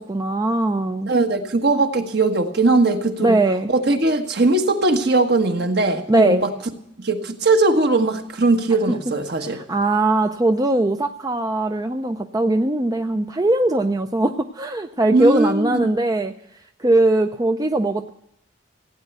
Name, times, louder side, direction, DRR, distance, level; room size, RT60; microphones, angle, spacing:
voice 1, 0.0-1.1 3.2-3.7 6.1-6.4 8.9-9.0 9.4-16.3 16.8-18.1, right 2 dB, 20° right, 7 dB, 0.5 m, -20 dB
voice 2, 1.1-3.4 3.7-6.5 7.0-9.6 15.1-15.9, right 2 dB, 55° right, 5 dB, 1.5 m, -19 dB
16.0 x 9.2 x 8.0 m, 0.77 s
head